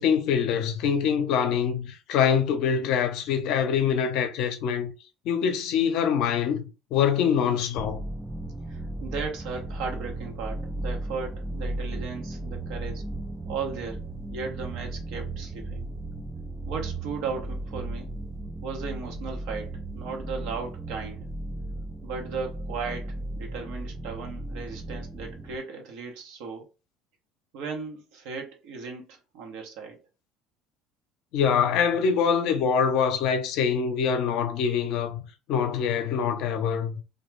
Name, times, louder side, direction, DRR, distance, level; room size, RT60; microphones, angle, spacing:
voice 1, 0.0-4.9 5.3-8.0 31.3-37.0, left 7 dB, 65° left, 0.5 m, -24 dB
sound 1, 7.8-25.6, right 2 dB, 10° right, 0.3 m, -35 dB
voice 2, 8.7-13.1 13.4-15.9 16.7-18.1 18.6-21.3 22.0-26.7 27.5-30.0, right 5 dB, 70° right, 0.8 m, -36 dB
2.3 x 2.2 x 3.1 m
hypercardioid pair, 80°, 0 cm